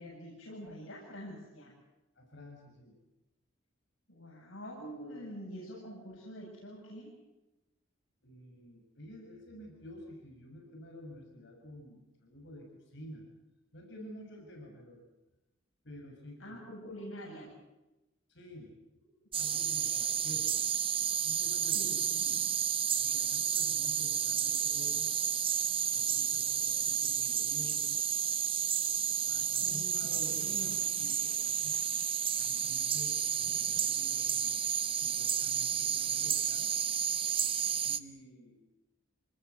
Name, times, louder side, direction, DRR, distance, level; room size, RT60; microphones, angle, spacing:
voice 1, 0.0-1.7 4.1-7.1 16.4-17.5 21.7-22.4 29.6-30.0 30.3-31.1 33.6-33.8, equal, 90° left, -4 dB, 7.8 m, -46 dB
voice 2, 2.1-2.9 8.2-13.2 13.7-15.0 15.8-16.6 18.3-18.7 19.3-20.5 21.2-22.0 22.9-25.1 25.9-28.0 29.3-31.8 32.4-34.6 34.9-36.7 37.8-38.6, left 1 dB, 60° left, 1 dB, 6.7 m, -50 dB
sound 1, 19.3-38.0, right 8 dB, 25° right, 0.8 m, -31 dB
27.0 x 19.5 x 8.2 m, 1.0 s
head